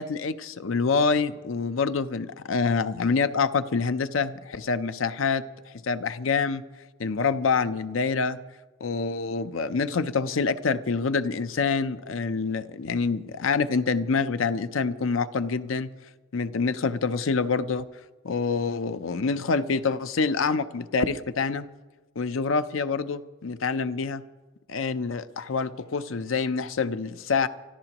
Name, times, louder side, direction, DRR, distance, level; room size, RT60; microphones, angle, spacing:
voice 1, 0.0-6.6 7.0-8.4 8.8-15.9 16.3-17.9 18.2-21.7 22.2-24.2 24.7-27.5, left 4 dB, 80° left, 12 dB, 0.6 m, -26 dB
26.5 x 14.0 x 3.0 m, 1.2 s
head